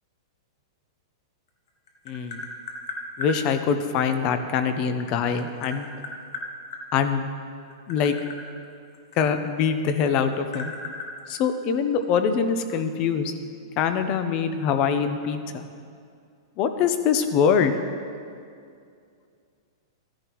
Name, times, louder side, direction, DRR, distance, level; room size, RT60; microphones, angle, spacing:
Tap, 1.5-3.4 4.7-6.8 7.6-9.7 10.0-12.0, left 3 dB, 60° left, 1.6 m, -36 dB
voice 1, 2.1-2.4 3.2-5.9 6.9-7.2 7.9-8.1 9.2-10.7 11.3-13.3 13.8-15.6 16.6-17.7, left 6 dB, 35° left, 9 dB, 0.6 m, -24 dB
13.5 x 10.0 x 3.1 m, 2.3 s
hypercardioid pair, 155°, 2 cm